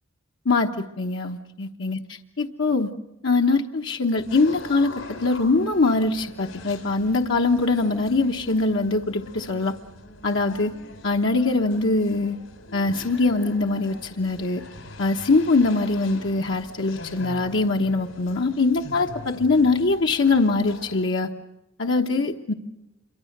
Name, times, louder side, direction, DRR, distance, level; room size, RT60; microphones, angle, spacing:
voice 1, 0.4-2.9 3.2-9.7 10.2-10.7 11.0-12.4 12.7-14.6 15.0-21.3 21.8-22.5, left 3 dB, 65° left, 2 dB, 1.1 m, -22 dB
sound 1, 4.2-21.1, left 2 dB, 90° left, 5.7 m, -43 dB
28.0 x 24.0 x 6.6 m, 0.99 s
head